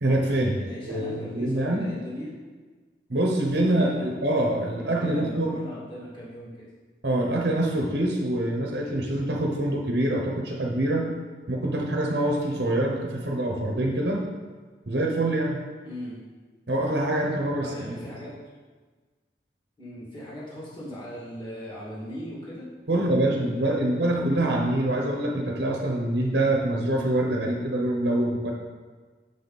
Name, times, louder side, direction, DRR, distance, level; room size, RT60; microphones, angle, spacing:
voice 1, 0.0-0.6 0.9-1.9 3.1-5.5 7.0-11.1 11.5-14.2 14.9-15.6 16.7-18.0 22.9-28.5, right 1 dB, 65° right, 1 dB, 0.9 m, -25 dB
voice 2, 0.6-2.3 3.6-4.1 4.8-6.6 15.8-16.2 17.6-18.4 19.8-22.7 22.9-24.0, equal, 25° left, -7 dB, 2.2 m, -39 dB
6.8 x 5.1 x 4.1 m, 1.4 s
head